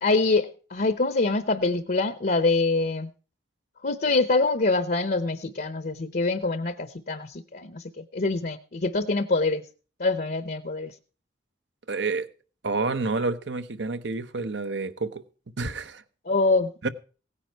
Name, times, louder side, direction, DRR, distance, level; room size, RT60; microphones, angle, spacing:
voice 1, 0.0-3.1 3.8-9.6 10.0-10.9 16.3-16.7, left 3 dB, 50° left, 0.8 m, -25 dB
voice 2, 11.9-12.3 12.6-15.2 15.6-16.0 16.8-16.9, right 3 dB, 70° right, 1.0 m, -29 dB
17.0 x 9.8 x 4.6 m
head